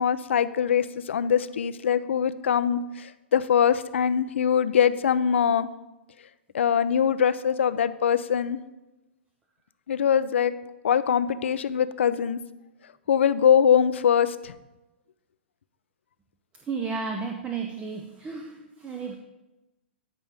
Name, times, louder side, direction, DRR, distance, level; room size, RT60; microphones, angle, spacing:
voice 1, 0.0-5.7 6.5-8.6 9.9-10.5 10.8-12.4 13.1-14.5, left 8 dB, 75° left, 15 dB, 0.5 m, -23 dB
voice 2, 16.7-19.2, right 5 dB, 20° right, 3 dB, 0.7 m, -33 dB
13.0 x 5.3 x 3.4 m, 1.0 s
hypercardioid pair, 125°, 7 cm